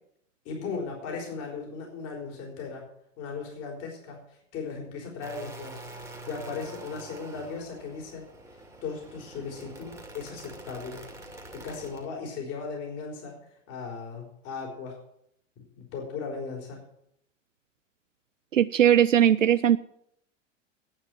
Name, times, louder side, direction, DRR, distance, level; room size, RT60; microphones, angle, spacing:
voice 1, 0.4-2.8 3.2-5.9 6.2-8.2 8.8-11.0 11.5-13.4 13.7-15.0 15.8-16.8, left 5 dB, 40° left, 0 dB, 3.9 m, -37 dB
sound 1, 5.2-12.1, right 2 dB, 5° right, 2.3 m, -45 dB
voice 2, 18.5-19.8, right 10 dB, 80° right, 14 dB, 0.5 m, -19 dB
10.5 x 8.8 x 8.8 m, 0.74 s
figure-of-eight pair, 85°, 38 cm